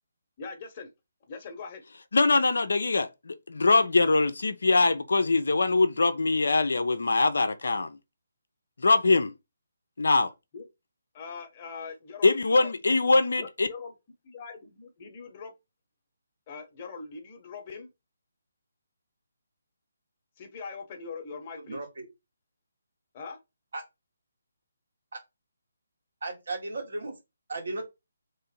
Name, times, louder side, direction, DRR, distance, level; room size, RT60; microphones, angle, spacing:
voice 1, 0.4-0.9 1.3-1.8 10.5-10.7 11.1-12.7 13.4-13.9 14.2-15.5 16.5-17.9 20.4-21.8 23.1-23.4, left 5 dB, 35° left, 1.1 m, -41 dB
voice 2, 2.1-8.0 8.8-9.3 10.0-10.3 12.2-13.7, left 3 dB, 70° left, 0.6 m, -23 dB
voice 3, 21.6-22.1 23.7-23.8 25.1-25.2 26.2-27.1 27.5-27.8, right 2 dB, 70° right, 1.7 m, -35 dB
3.7 x 3.1 x 4.3 m
figure-of-eight pair, 150°, 0 cm